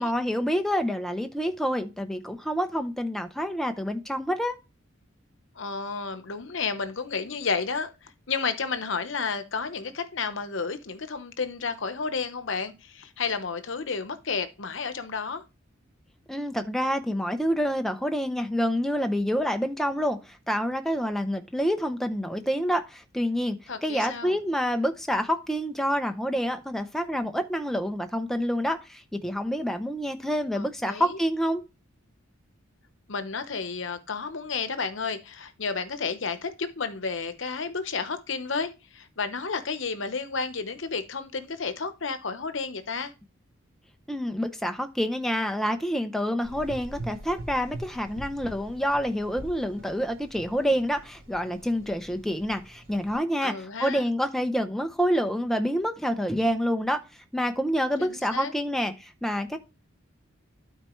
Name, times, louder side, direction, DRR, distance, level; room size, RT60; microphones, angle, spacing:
voice 1, 0.0-4.6 16.3-31.6 44.1-57.0 57.3-59.6, equal, ahead, 0.6 m, -27 dB
voice 2, 5.6-15.4 23.7-24.4 30.5-31.2 33.1-43.1 53.4-54.0 58.0-58.5, left 5 dB, 65° left, 0.9 m, -32 dB
Gurgling / Engine, 46.4-53.2, right 1 dB, 70° right, 3.2 m, -43 dB
12.5 x 4.4 x 3.1 m
head